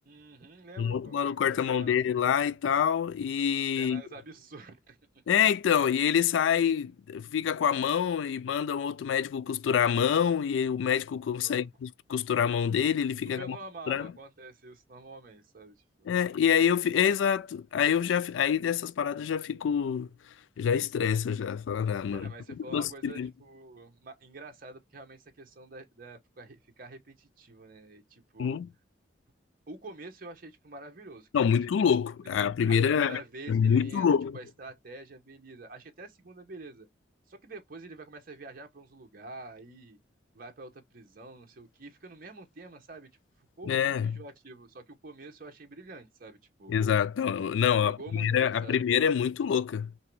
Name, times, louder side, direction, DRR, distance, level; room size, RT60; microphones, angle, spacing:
voice 1, 0.1-1.2 1.5-2.0 3.8-5.0 11.4-11.7 13.4-16.1 22.1-28.6 29.7-31.5 32.7-34.1 34.3-36.9 37.3-40.0 40.3-43.1 43.4-46.7 47.8-48.9, right 2 dB, 50° right, 0.9 m, -47 dB
voice 2, 0.8-4.0 5.3-13.6 13.9-14.1 16.1-20.1 20.6-22.3 22.7-23.3 28.4-28.7 31.3-33.2 33.5-34.4 43.7-44.1 46.7-49.9, left 8 dB, 90° left, 0.3 m, -26 dB
3.0 x 2.7 x 4.5 m
head